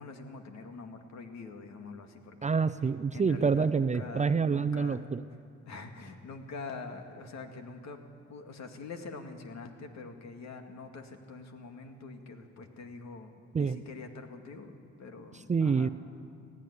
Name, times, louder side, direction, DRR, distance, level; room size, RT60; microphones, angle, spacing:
voice 1, 0.0-2.5 3.1-5.2 5.7-8.0 8.3-15.9, left 4 dB, 65° left, 5 dB, 2.2 m, -45 dB
voice 2, 2.4-5.2 13.5-13.8 15.5-15.9, right 5 dB, 25° right, 13 dB, 0.6 m, -27 dB
18.5 x 15.0 x 10.0 m, 2.3 s
cardioid pair, 90°, 30 cm